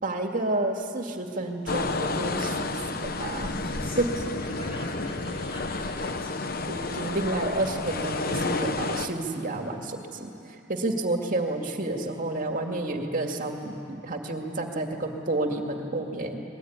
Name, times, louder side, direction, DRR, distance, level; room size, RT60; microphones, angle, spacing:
voice 1, 0.0-3.5 4.0-4.1 6.7-16.4, right 2 dB, 45° right, 3 dB, 2.2 m, -30 dB
sound 1, 1.7-9.1, left 3 dB, 50° left, 1.1 m, -31 dB
voice 2, 3.6-6.4, equal, 30° left, -3 dB, 4.7 m, -44 dB
25.0 x 20.5 x 9.6 m, 2.8 s
head